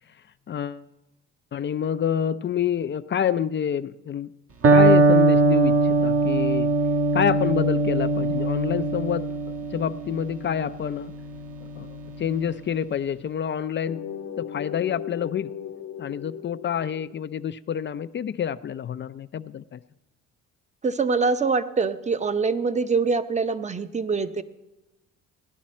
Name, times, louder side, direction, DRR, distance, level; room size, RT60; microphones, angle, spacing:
voice 1, 0.5-0.8 1.5-4.3 4.7-6.7 7.1-9.3 9.7-11.1 11.8-11.9 12.2-14.0 14.4-15.5 16.0-19.8, left 8 dB, 40° left, 13 dB, 0.4 m, -27 dB
Electric guitar, 4.6-12.5, right 2 dB, 50° right, 1.2 m, -21 dB
sound 1, 13.9-17.4, left 9 dB, 65° left, 0.8 m, -37 dB
voice 2, 20.8-24.4, right 4 dB, 25° right, 12 dB, 0.7 m, -24 dB
17.5 x 11.0 x 4.2 m, 0.98 s
cardioid pair, 90°, 30 cm